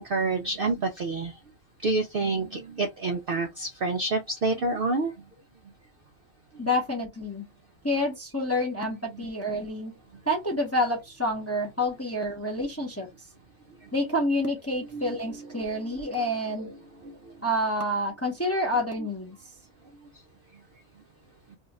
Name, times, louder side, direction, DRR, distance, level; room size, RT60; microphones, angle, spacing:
voice 1, 0.0-1.3 1.8-5.1 9.1-9.3 14.9-15.1 15.6-15.8 16.1-16.2 16.6-16.7, right 3 dB, 65° right, 0.6 m, -28 dB
voice 2, 6.6-7.4 7.8-9.9 10.3-13.1 13.9-16.7 17.4-19.4, left 1 dB, 15° left, 0.6 m, -28 dB
2.7 x 2.4 x 4.0 m
omnidirectional pair, 1.5 m